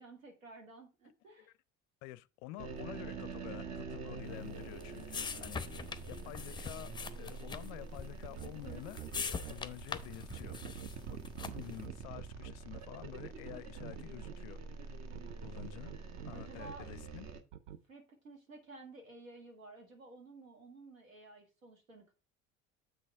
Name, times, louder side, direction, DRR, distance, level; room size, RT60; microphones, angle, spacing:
voice 1, 0.0-1.5 16.3-16.9 17.9-22.1, right 3 dB, 80° right, 2.1 m, -53 dB
voice 2, 2.0-5.8 6.1-10.6 11.1-11.2 11.5-14.9 15.4-15.9 16.2-17.3, left 17 dB, 45° left, 0.5 m, -49 dB
sound 1, 2.6-17.4, right 4 dB, 40° right, 1.2 m, -46 dB
sound 2, 4.3-11.8, left 5 dB, 10° left, 0.6 m, -44 dB
sound 3, 8.2-9.5 10.3-14.3 15.1-16.7 17.5-17.8, right 11 dB, 60° right, 0.8 m, -46 dB
7.9 x 6.1 x 3.5 m
figure-of-eight pair, 60°, 40 cm